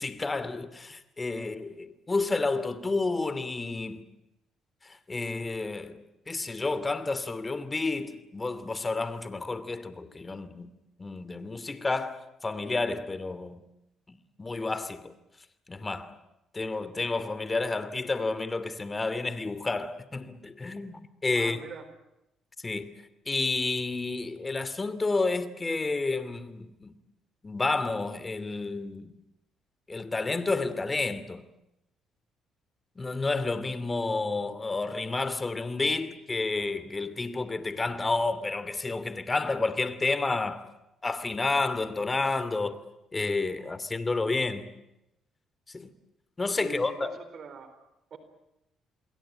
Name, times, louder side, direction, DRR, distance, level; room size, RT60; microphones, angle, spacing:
voice 1, 0.0-4.0 4.8-10.7 11.0-13.6 14.1-15.1 15.7-16.1 16.5-21.6 22.6-22.9 23.3-26.9 27.4-29.1 29.9-31.4 33.0-40.6 41.0-42.8 43.1-44.7 45.7-45.9 46.4-47.2, left 3 dB, 25° left, 2.8 m, -30 dB
voice 2, 21.3-21.8 46.6-47.7 48.1-48.2, right 5 dB, 55° right, 4.3 m, -42 dB
28.0 x 21.5 x 9.0 m
cardioid pair, 80°, 0 cm